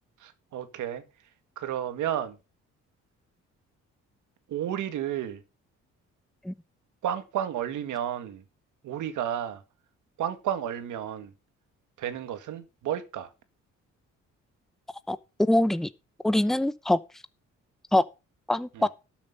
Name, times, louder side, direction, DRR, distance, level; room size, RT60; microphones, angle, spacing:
voice 1, 0.2-1.0 1.5-2.4 4.5-5.4 7.0-8.4 8.8-9.6 10.2-11.3 12.0-13.3 18.7-18.9, right 10 dB, 80° right, 1.8 m, -32 dB
voice 2, 15.1-15.9 16.2-17.0 17.9-18.0 18.5-18.9, left 1 dB, ahead, 0.7 m, -23 dB
12.5 x 7.1 x 5.3 m
cardioid pair, 90°, 30 cm